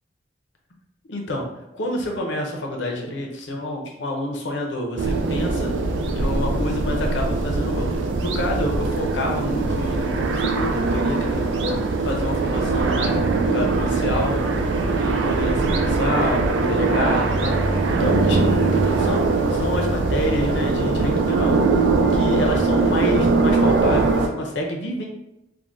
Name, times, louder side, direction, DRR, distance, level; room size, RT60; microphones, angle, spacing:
voice 1, 1.1-5.7 6.1-7.9 8.2-13.2 13.5-14.4 15.0-21.6 22.1-25.1, left 1 dB, 80° left, 1 dB, 0.6 m, -28 dB
sound 1, 5.0-24.3, right 3 dB, 80° right, 0.3 m, -21 dB
3.5 x 2.1 x 2.5 m, 0.88 s
head